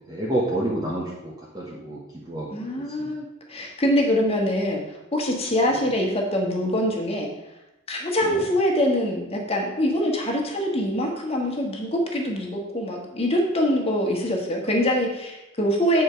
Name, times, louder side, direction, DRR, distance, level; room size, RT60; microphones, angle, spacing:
voice 1, 0.1-2.0 2.3-2.6 3.0-3.1 8.2-8.4, right 1 dB, 20° right, -7 dB, 1.4 m, -28 dB
voice 2, 2.5-4.8 5.1-7.3 7.9-16.0, equal, 30° left, 0 dB, 1.6 m, -24 dB
9.1 x 4.7 x 5.2 m, 0.94 s
head